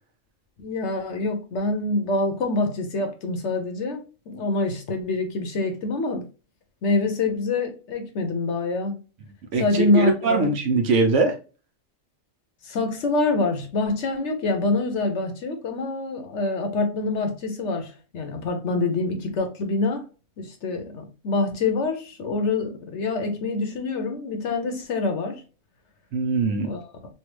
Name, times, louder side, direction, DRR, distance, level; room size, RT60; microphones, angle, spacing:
voice 1, 0.6-6.2 6.8-9.0 9.6-10.5 12.6-20.0 20.4-25.4 26.6-26.9, left 3 dB, 60° left, 0.9 m, -26 dB
voice 2, 9.5-11.3 26.1-26.7, right 3 dB, 65° right, 1.0 m, -22 dB
3.3 x 2.3 x 3.0 m
omnidirectional pair, 1.4 m